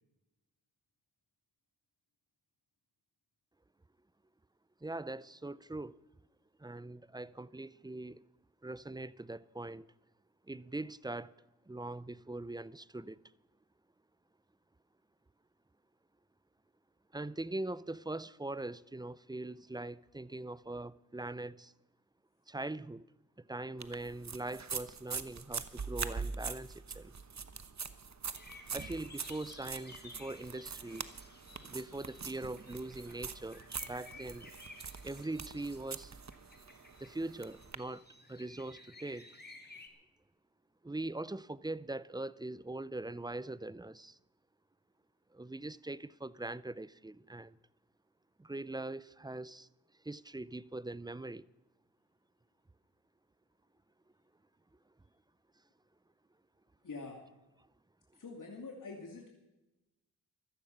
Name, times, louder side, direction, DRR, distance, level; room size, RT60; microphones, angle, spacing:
voice 1, 4.8-6.0 6.6-8.2 8.6-9.9 10.5-11.3 11.7-13.2 17.1-21.7 22.5-23.1 23.4-27.1 28.7-31.1 31.7-34.5 35.0-36.1 37.0-38.0 38.3-39.3 40.8-44.2 45.3-47.6 48.4-49.7 50.0-51.5, right 2 dB, 10° right, 0.5 m, -42 dB
sound 1, 23.8-37.8, right 5 dB, 50° right, 1.1 m, -43 dB
sound 2, 28.3-39.9, left 3 dB, 25° left, 2.8 m, -55 dB
voice 2, 56.8-57.2 58.1-59.3, left 3 dB, 55° left, 2.6 m, -45 dB
15.0 x 14.0 x 5.7 m
cardioid pair, 40°, 36 cm